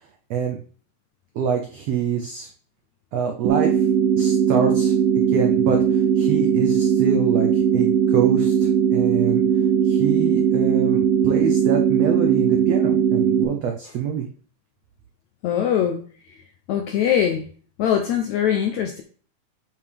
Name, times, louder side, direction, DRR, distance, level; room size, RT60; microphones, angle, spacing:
voice 1, 1.3-2.5 3.1-3.8 4.1-4.9 5.3-9.4 9.8-14.3, right 7 dB, 90° right, 2 dB, 1.4 m, -26 dB
sound 1, 3.4-13.4, right 8 dB, 75° right, 2.5 m, -19 dB
voice 2, 15.4-16.0 16.7-17.4 17.8-19.0, left 9 dB, 80° left, 4 dB, 1.6 m, -21 dB
8.6 x 5.7 x 3.5 m, 0.42 s
omnidirectional pair, 4.1 m